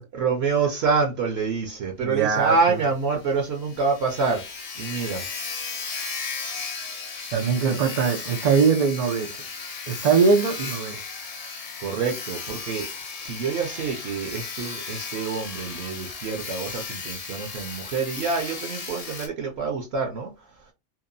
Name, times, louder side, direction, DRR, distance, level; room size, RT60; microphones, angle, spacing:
voice 1, 0.1-4.4 4.8-5.3 7.3-7.8 11.8-20.5, right 4 dB, 60° right, 0.8 m, -27 dB
voice 2, 2.0-2.8 7.3-9.3 9.9-11.0, right 5 dB, 85° right, 0.3 m, -21 dB
Sawing, 2.4-2.5 2.8-2.9 3.3-3.4 3.5-19.3, left 5 dB, 50° left, 0.4 m, -35 dB
2.8 x 2.1 x 2.5 m
omnidirectional pair, 1.3 m